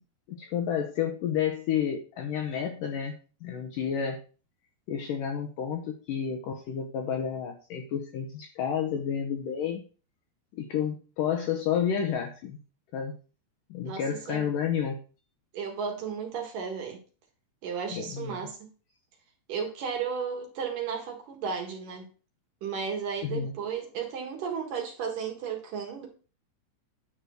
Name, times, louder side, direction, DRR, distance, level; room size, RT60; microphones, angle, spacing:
voice 1, 0.3-4.2 4.9-9.8 10.6-12.6 12.9-13.1 13.7-15.0 17.9-18.4 23.2-23.5, left 8 dB, 70° left, 2.1 m, -30 dB
voice 2, 13.8-14.5 15.5-17.0 17.6-18.6 19.5-22.1 22.6-26.1, right 6 dB, 60° right, 3.0 m, -34 dB
10.5 x 4.8 x 6.4 m
omnidirectional pair, 4.8 m